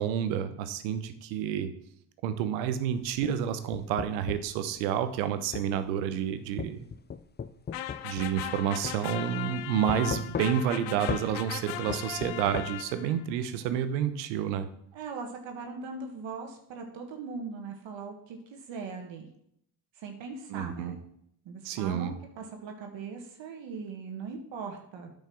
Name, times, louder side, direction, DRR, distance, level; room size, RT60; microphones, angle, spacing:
voice 1, 0.0-1.7 2.2-6.9 8.0-14.7 20.5-20.9 21.6-22.1, right 9 dB, 85° right, 11 dB, 0.9 m, -29 dB
sound 1, 3.0-4.6 5.5-5.7 6.6-8.6 8.8-9.0 9.9-10.8 11.1-11.3 11.9-12.7, left 6 dB, 20° left, 0.5 m, -36 dB
sound 2, 7.7-13.2, left 12 dB, 85° left, 0.7 m, -38 dB
voice 2, 14.9-19.3 20.0-21.0 21.4-25.1, right 4 dB, 65° right, 3 dB, 1.7 m, -40 dB
9.2 x 5.3 x 6.2 m, 0.71 s
hypercardioid pair, 60°, 49 cm